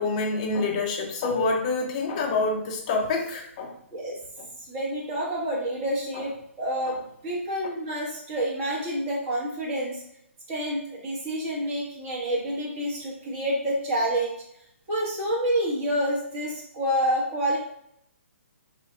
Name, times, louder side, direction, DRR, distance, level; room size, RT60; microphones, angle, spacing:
voice 1, 0.0-3.7 4.4-4.5 6.1-6.2 6.9-7.0, left 3 dB, 30° left, 1 dB, 0.7 m, -27 dB
voice 2, 4.7-10.0 10.5-14.4 14.9-17.6, right 1 dB, 25° right, -4 dB, 1.1 m, -28 dB
4.6 x 2.3 x 3.1 m, 0.74 s
figure-of-eight pair, 130°, 7 cm